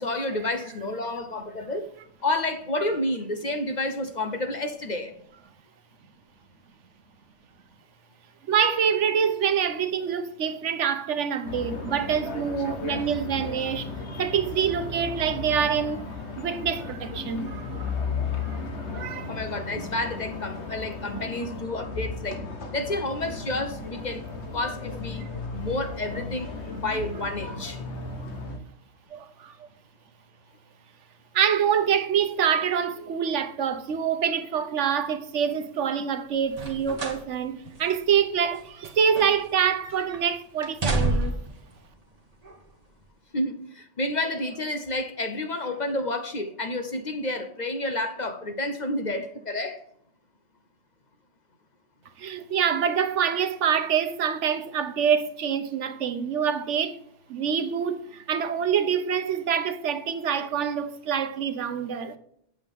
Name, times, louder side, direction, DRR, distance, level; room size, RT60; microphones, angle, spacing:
voice 1, 0.0-1.9 2.2-5.1 19.3-22.5 22.7-24.3 24.5-25.3 25.5-27.8 43.3-49.8, left 2 dB, 40° left, 0.8 m, -30 dB
voice 2, 8.5-17.8 18.3-18.6 18.9-19.3 29.1-29.6 31.3-41.4 52.2-57.0 57.3-62.2, right 7 dB, 75° right, 1.1 m, -26 dB
sound 1, 11.5-28.6, left 4 dB, 65° left, 1.4 m, -35 dB
sound 2, 36.5-37.3 37.7-37.8 38.5-39.6 39.8-40.2 40.6-41.6 42.4-42.5, right 2 dB, 35° right, 1.2 m, -29 dB
8.0 x 7.4 x 3.5 m
omnidirectional pair, 1.2 m